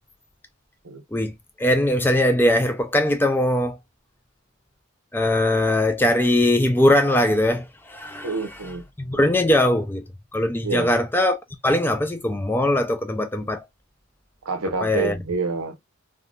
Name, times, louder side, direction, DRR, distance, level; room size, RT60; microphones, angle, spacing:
voice 1, 1.1-3.8 5.1-10.0 10.3-13.6 14.8-15.2, left 1 dB, 10° left, 0.3 m, -21 dB
voice 2, 8.2-8.8 9.1-9.2 10.6-10.9 14.4-15.8, right 3 dB, 80° right, 0.8 m, -27 dB
3.5 x 2.2 x 2.4 m
head